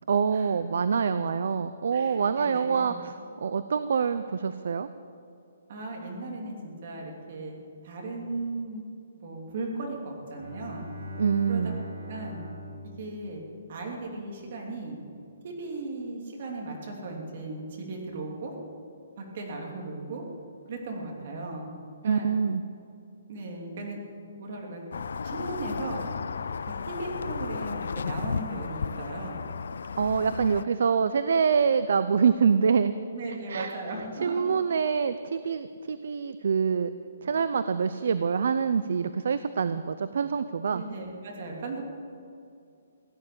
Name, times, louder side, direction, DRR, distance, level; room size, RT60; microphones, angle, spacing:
voice 1, 0.1-4.9 11.2-11.8 22.0-22.6 30.0-32.9 33.5-33.7 34.2-36.9 37.2-40.8, right 6 dB, 60° right, 12 dB, 0.6 m, -25 dB
voice 2, 1.9-2.9 5.7-7.5 7.8-8.8 9.2-10.9 11.5-12.4 13.0-13.4 13.7-15.0 15.4-18.6 19.2-20.2 20.7-21.7 22.0-22.3 23.3-24.0 24.4-24.8 25.2-26.1 26.8-29.4 30.5-30.6 33.1-34.5 40.7-41.8, right 2 dB, 40° right, 0 dB, 2.9 m, -37 dB
Bowed string instrument, 10.2-14.0, left 1 dB, 90° right, 4.1 m, -42 dB
sound 1, 24.9-30.6, left 5 dB, 70° left, 0.5 m, -34 dB
16.5 x 10.0 x 8.7 m, 2.5 s
hypercardioid pair, 175°, 0 cm